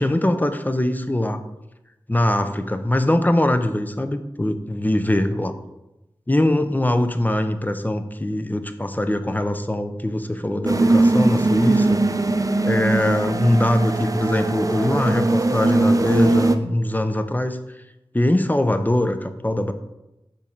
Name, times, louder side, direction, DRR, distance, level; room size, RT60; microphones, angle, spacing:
voice 1, 0.0-1.4 2.1-5.5 6.3-12.0 12.6-17.6 18.1-19.7, left 1 dB, 15° left, 9 dB, 0.6 m, -22 dB
sound 1, 10.7-16.6, right 2 dB, 35° right, 0.5 m, -20 dB
5.3 x 4.2 x 5.2 m, 0.94 s
wide cardioid pair, 45°, 10 cm